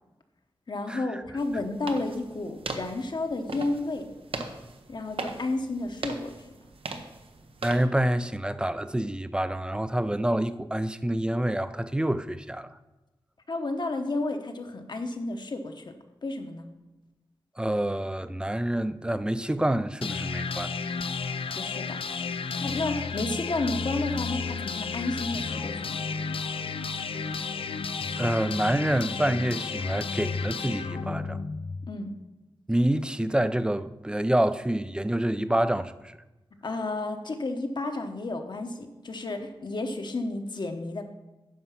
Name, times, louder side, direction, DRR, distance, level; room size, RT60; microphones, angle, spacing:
voice 1, 0.7-4.1 4.9-6.3 13.5-15.9 16.2-16.7 21.5-22.0 22.5-26.0 31.9-32.1 36.6-41.0, left 2 dB, 55° left, 1.0 m, -31 dB
sound 1, 1.4-7.9, right 3 dB, 80° right, 0.8 m, -39 dB
voice 2, 7.6-12.7 17.6-20.7 28.2-31.4 32.7-36.2, right 1 dB, 10° right, 0.4 m, -27 dB
sound 2, 20.0-32.0, left 5 dB, 80° left, 0.5 m, -32 dB
9.5 x 5.7 x 5.8 m
wide cardioid pair, 95°, 9 cm